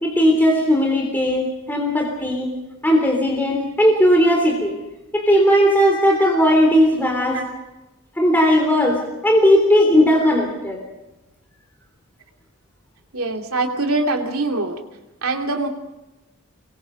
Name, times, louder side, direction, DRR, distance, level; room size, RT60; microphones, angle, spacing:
voice 1, 0.0-2.5 2.8-4.7 5.1-7.4 8.2-10.8, equal, 10° left, 1 dB, 3.4 m, -17 dB
voice 2, 13.1-14.8 15.2-15.7, right 2 dB, 75° right, 3 dB, 2.8 m, -23 dB
25.0 x 22.5 x 5.2 m, 1.0 s
head